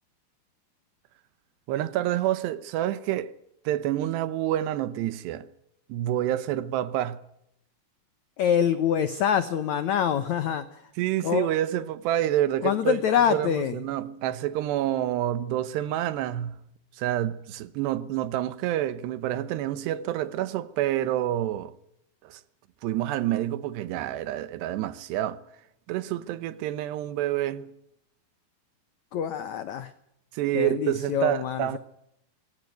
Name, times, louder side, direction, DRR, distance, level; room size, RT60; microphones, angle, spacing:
voice 1, 1.7-3.4 3.6-5.5 5.9-7.2 11.0-13.0 13.3-16.6 16.9-21.7 22.2-22.4 22.8-25.4 25.9-27.7 30.3-31.8, right 13 dB, 80° right, 3.1 m, -28 dB
voice 2, 8.4-10.9 11.2-11.5 12.6-13.8 29.1-29.9 30.5-31.8, left 8 dB, 80° left, 1.6 m, -25 dB
22.0 x 18.0 x 9.2 m
omnidirectional pair, 5.0 m